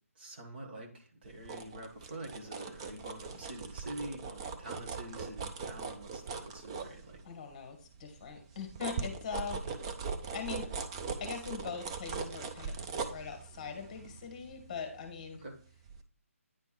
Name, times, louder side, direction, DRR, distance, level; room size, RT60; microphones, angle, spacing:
voice 1, 0.1-7.2 15.4-15.5, right 1 dB, 45° right, 2 dB, 1.5 m, -46 dB
sound 1, 1.2-7.5 7.9-15.5 15.9-16.0, right 5 dB, 25° right, 0.6 m, -40 dB
voice 2, 7.2-9.6 10.3-10.8 11.2-12.8 13.1-15.4, left 6 dB, 30° left, 5 dB, 1.3 m, -41 dB
9.5 x 3.5 x 4.5 m, 0.43 s
figure-of-eight pair, 145°, 8 cm